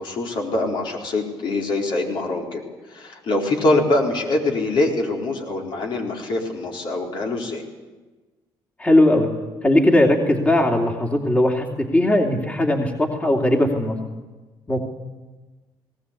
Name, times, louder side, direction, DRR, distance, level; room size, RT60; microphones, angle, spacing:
voice 1, 0.0-2.6 2.9-7.6, left 2 dB, 60° left, 0 dB, 4.4 m, -23 dB
voice 2, 8.8-9.3 9.6-14.0 14.7-14.8, left 1 dB, 15° left, 1 dB, 2.8 m, -18 dB
19.0 x 18.0 x 8.5 m, 1.2 s
cardioid pair, 90°, 9 cm